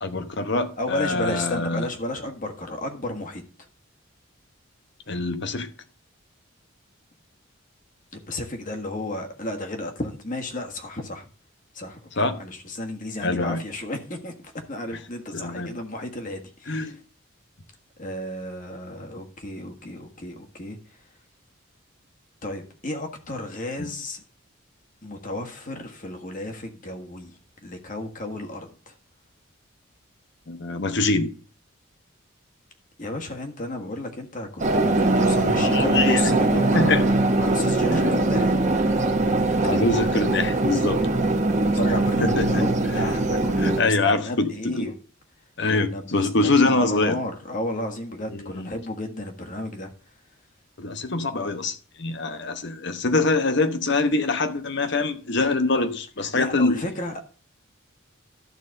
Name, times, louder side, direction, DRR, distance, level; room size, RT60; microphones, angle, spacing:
voice 1, 0.0-1.9 5.1-5.7 12.2-12.3 13.2-13.6 14.9-15.0 15.3-15.7 16.7-17.0 23.8-23.9 30.5-31.3 35.5-36.2 36.7-37.0 37.8-38.3 39.6-41.0 42.2-42.7 42.9-43.0 43.6-44.9 45.6-47.2 48.3-48.7 50.8-56.8, left 3 dB, 60° left, 1.0 m, -24 dB
voice 2, 0.8-3.4 8.1-11.3 11.7-17.0 18.0-20.8 22.4-24.2 25.0-28.9 33.0-37.1 37.3-38.5 41.7-44.9 45.7-49.9 56.2-57.2, left 1 dB, 40° left, 1.5 m, -33 dB
sound 1, 34.6-43.8, right 2 dB, 35° right, 1.0 m, -21 dB
12.0 x 4.2 x 6.4 m
head